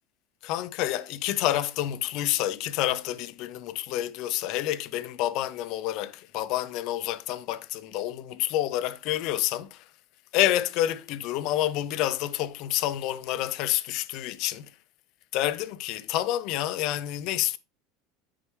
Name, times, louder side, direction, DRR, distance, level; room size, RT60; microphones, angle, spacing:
voice 1, 0.4-9.8 10.3-14.7 15.3-17.6, left 13 dB, 50° left, 0.6 m, -28 dB
9.9 x 4.9 x 3.2 m
supercardioid pair, 160°, 0 cm